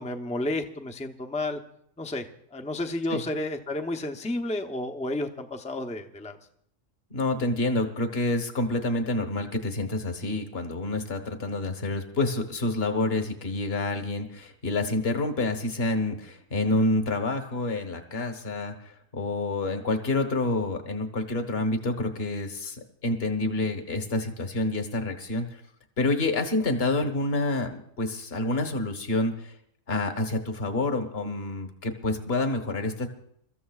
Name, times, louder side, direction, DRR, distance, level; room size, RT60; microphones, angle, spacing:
voice 1, 0.0-1.6 2.0-6.4, left 2 dB, 5° left, 4 dB, 0.6 m, -31 dB
voice 2, 7.1-25.6 26.0-29.5 29.9-33.1, left 2 dB, 50° left, 7 dB, 1.5 m, -28 dB
28.5 x 14.0 x 2.4 m, 0.70 s
omnidirectional pair, 1.4 m